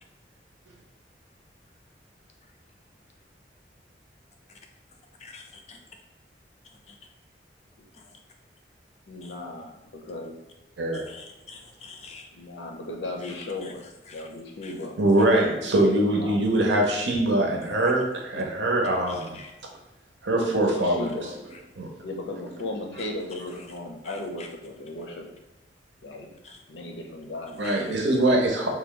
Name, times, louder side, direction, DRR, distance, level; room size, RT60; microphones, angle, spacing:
voice 1, 5.2-5.8 6.9-7.0 9.2-9.3 10.9-12.3 13.2-13.3 13.6-13.7 14.1-14.2 14.6-14.7 17.6-17.7 19.1-19.5 24.0-24.5 26.4-26.6 27.6-27.8, left 4 dB, 35° left, 3 dB, 0.4 m, -46 dB
voice 2, 9.1-10.3 12.3-13.8 14.1-14.9 16.0-16.4 20.4-21.3 22.0-25.3 26.0-26.3 26.7-28.0, left 2 dB, 80° left, 1 dB, 0.6 m, -36 dB
voice 3, 15.0-19.4 20.2-21.1 21.8-21.9 27.6-28.7, right 1 dB, 85° right, 1 dB, 0.7 m, -23 dB
2.9 x 2.2 x 3.7 m, 0.97 s
head